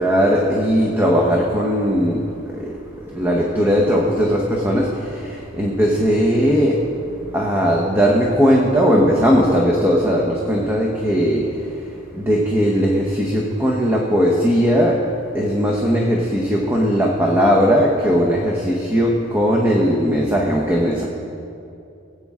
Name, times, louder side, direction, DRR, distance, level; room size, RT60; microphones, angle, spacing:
voice 1, 0.0-21.1, equal, 10° right, -2 dB, 0.9 m, -18 dB
19.0 x 8.5 x 3.7 m, 2.7 s
head